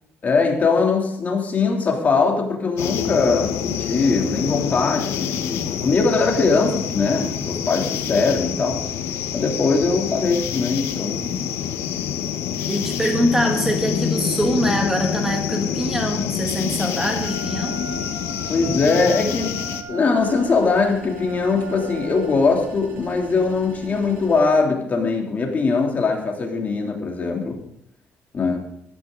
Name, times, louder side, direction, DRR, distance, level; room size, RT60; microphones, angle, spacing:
voice 1, 0.2-8.8 9.3-11.5 18.5-19.6 19.9-27.6 28.3-28.6, left 4 dB, 35° left, 1 dB, 3.2 m, -21 dB
sound 1, 2.8-19.8, left 9 dB, 80° left, 1.2 m, -27 dB
voice 2, 12.7-17.8, equal, 10° right, 3 dB, 1.8 m, -23 dB
Wind instrument woodwind instrument, 17.2-22.5, right 4 dB, 85° right, 2.9 m, -38 dB
sound 2, 20.1-24.4, right 4 dB, 65° right, 6.4 m, -40 dB
14.0 x 13.0 x 4.0 m, 0.72 s
cardioid pair, 110°, 5 cm